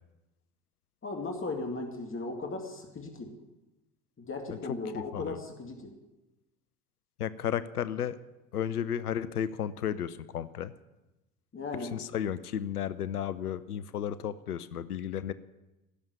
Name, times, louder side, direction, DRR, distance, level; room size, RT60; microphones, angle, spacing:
voice 1, 1.0-3.3 4.2-5.9 11.5-11.9, left 3 dB, 30° left, 2 dB, 2.3 m, -37 dB
voice 2, 4.9-5.4 7.2-8.2 8.5-10.7 11.8-15.3, left 9 dB, 90° left, 15 dB, 0.6 m, -33 dB
16.5 x 7.1 x 9.5 m, 1.0 s
figure-of-eight pair, 65°, 44 cm